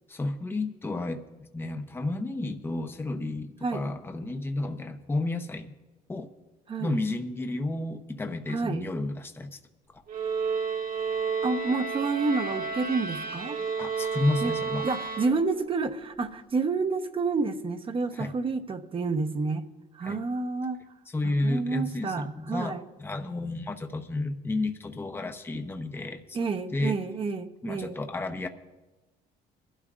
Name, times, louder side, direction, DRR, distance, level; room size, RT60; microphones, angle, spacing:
voice 1, 0.1-1.2 1.5-5.7 6.1-6.3 6.8-9.6 9.9-10.0 13.8-14.9 18.1-18.3 20.0-20.2 21.1-26.4 26.7-27.0 27.6-28.5, left 2 dB, 15° left, 7 dB, 0.8 m, -31 dB
voice 2, 8.5-8.9 11.4-13.6 14.4-14.5 14.8-19.6 19.9-20.8 21.2-22.8 26.3-28.0, right 4 dB, 30° right, 7 dB, 0.9 m, -29 dB
sound 1, 10.1-15.8, right 5 dB, 60° right, 1.6 m, -31 dB
22.5 x 12.0 x 2.5 m, 1.1 s
cardioid pair, 110°, 17 cm